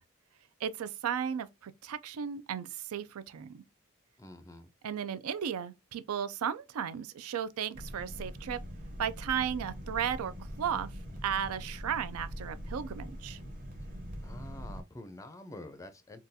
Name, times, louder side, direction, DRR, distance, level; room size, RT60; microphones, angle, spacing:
voice 1, 0.6-3.6 4.8-8.6 9.0-10.3 10.6-10.9 11.2-13.4, right 8 dB, 85° right, 0.4 m, -35 dB
voice 2, 4.2-4.7 14.2-16.2, left 1 dB, 15° left, 0.4 m, -47 dB
sound 1, 7.7-14.8, equal, 40° right, 0.9 m, -43 dB
3.7 x 2.3 x 2.6 m
head